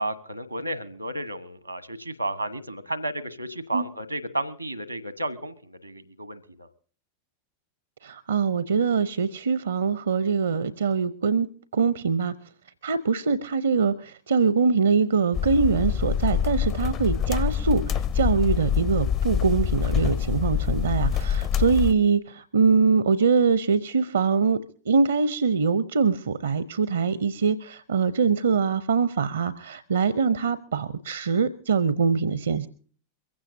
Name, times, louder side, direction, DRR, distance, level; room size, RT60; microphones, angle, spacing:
voice 1, 0.0-6.7, right 1 dB, 85° right, 15 dB, 1.2 m, -32 dB
voice 2, 8.0-11.5 11.7-12.3 12.8-24.6 24.9-32.7, right 5 dB, 70° right, 16 dB, 0.7 m, -23 dB
sound 1, 15.3-21.9, left 8 dB, 35° left, 0.6 m, -25 dB
23.0 x 16.0 x 2.7 m, 0.43 s
figure-of-eight pair, 90°, 0 cm